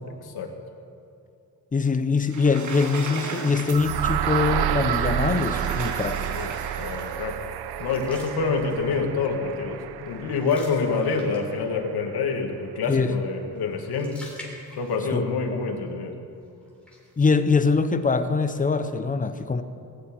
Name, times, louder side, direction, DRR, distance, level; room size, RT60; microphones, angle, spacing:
voice 1, 1.7-6.3 12.9-13.1 15.1-15.2 17.2-19.6, left 4 dB, 20° left, 10 dB, 0.7 m, -23 dB
Sliding door, 2.2-4.2 5.1-7.3, right 4 dB, 50° right, 1.5 m, -36 dB
sound 1, 3.7-11.6, right 11 dB, 90° right, 0.7 m, -29 dB
voice 2, 6.2-7.4 7.8-14.2 14.8-16.1, left 4 dB, 80° left, 3 dB, 2.0 m, -27 dB
sound 2, 7.8-9.1 9.5-9.7 10.0-11.8 13.5-15.3 15.6-15.7 16.6-17.5, left 1 dB, 5° left, 3.3 m, -45 dB
19.0 x 7.4 x 9.0 m, 2.6 s
wide cardioid pair, 145°, 38 cm